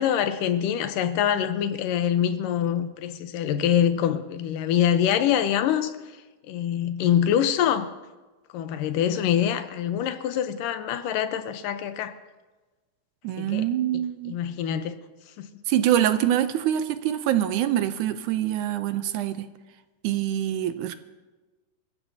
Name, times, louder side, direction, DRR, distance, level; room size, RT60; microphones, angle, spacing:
voice 1, 0.0-5.9 6.5-7.9 8.5-12.1 13.4-13.7 14.3-15.0 15.4-15.5, left 9 dB, 85° left, 2.5 m, -24 dB
voice 2, 13.2-14.4 15.7-19.5 20.0-21.0, right 11 dB, 75° right, 2.0 m, -25 dB
27.0 x 15.0 x 2.8 m
omnidirectional pair, 3.7 m